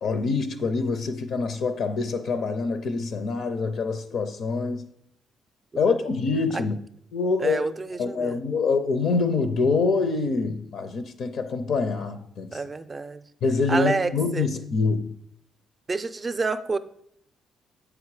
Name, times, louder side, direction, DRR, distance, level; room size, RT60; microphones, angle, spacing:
voice 1, 0.0-4.9 5.8-6.8 7.1-7.6 8.0-12.6 13.4-15.1, left 4 dB, 65° left, 0.6 m, -25 dB
voice 2, 7.4-8.4 12.5-13.2 13.7-14.5 15.9-16.8, right 4 dB, 30° right, 0.5 m, -28 dB
8.0 x 5.0 x 4.8 m
cardioid pair, 90°, 0 cm